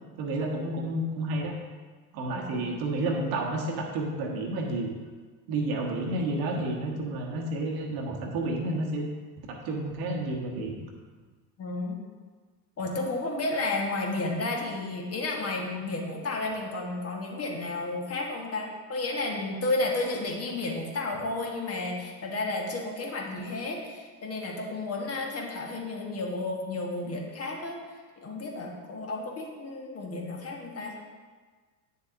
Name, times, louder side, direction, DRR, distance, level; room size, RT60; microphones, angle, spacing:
voice 1, 0.2-1.5 2.1-4.9 5.5-9.1 9.5-10.8, right 2 dB, 50° right, 1 dB, 1.3 m, -30 dB
voice 2, 11.6-12.0 12.8-27.8 28.2-30.9, left 2 dB, 30° left, 0 dB, 1.4 m, -32 dB
9.0 x 6.8 x 2.7 m, 1.4 s
figure-of-eight pair, 75°, 48 cm